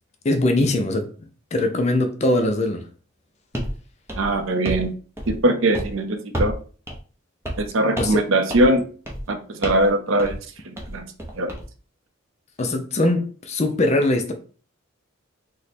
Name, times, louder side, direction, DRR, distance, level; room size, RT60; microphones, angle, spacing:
voice 1, 0.2-1.1 1.5-2.8 8.0-8.2 12.6-14.3, left 1 dB, 30° left, 0.4 m, -21 dB
sound 1, 3.5-3.8 4.1-4.9 5.2-5.5 5.7-5.9 6.3-6.6 6.9-7.0 7.4-7.7 8.0-8.2 8.5-8.8 9.1-9.3 9.6-9.9 10.2-10.4 10.8-11.6, equal, 10° right, 0.6 m, -30 dB
voice 2, 4.2-4.9 5.3-6.5 7.6-8.8 9.3-10.4 10.7-11.1 11.4-11.5, right 1 dB, 70° right, 0.6 m, -21 dB
3.1 x 2.1 x 4.1 m
head